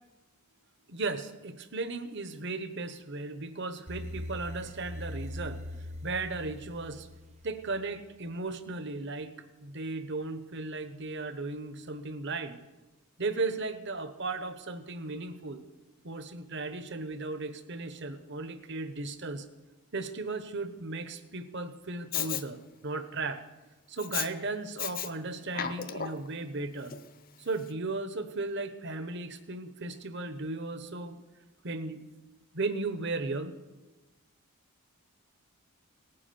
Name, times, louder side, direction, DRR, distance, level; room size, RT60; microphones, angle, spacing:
voice 1, 0.9-5.6 6.0-7.1 7.4-9.3 9.6-12.6 13.2-15.6 16.0-19.4 19.9-23.4 23.9-26.9 27.4-31.2 31.6-32.0 32.5-33.5, right 3 dB, 50° right, 10 dB, 1.1 m, -36 dB
sound 1, 3.9-7.9, left 1 dB, 30° right, 0.8 m, -41 dB
Respiratory sounds, 22.1-22.4 24.0-24.3 24.8-25.1 25.5-26.3 26.9-27.0, left 9 dB, 40° left, 0.7 m, -33 dB
18.5 x 9.8 x 7.0 m, 1.1 s
head